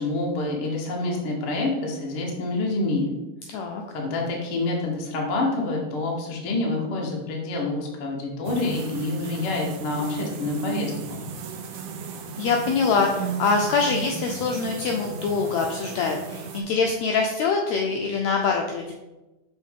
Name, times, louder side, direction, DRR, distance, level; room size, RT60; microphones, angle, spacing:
voice 1, 0.0-3.1 3.9-11.2, left 2 dB, 60° left, -1 dB, 1.5 m, -27 dB
sound 1, 8.4-16.6, right 5 dB, 85° right, 1.3 m, -35 dB
voice 2, 12.4-18.9, left 4 dB, 85° left, 2 dB, 1.5 m, -24 dB
6.3 x 4.5 x 3.5 m, 1.1 s
omnidirectional pair, 3.6 m